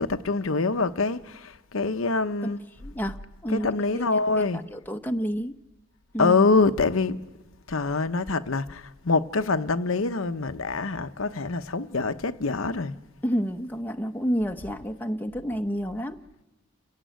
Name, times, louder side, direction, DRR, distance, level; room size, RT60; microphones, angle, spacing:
voice 1, 0.0-2.6 3.5-4.6 6.2-7.2 7.7-13.0, left 3 dB, 75° left, 0.9 m, -25 dB
voice 2, 2.8-3.2 3.4-3.7 3.9-4.1 4.4-5.6 6.1-6.4 13.2-16.2, equal, 10° left, 0.9 m, -29 dB
29.5 x 16.5 x 9.3 m
head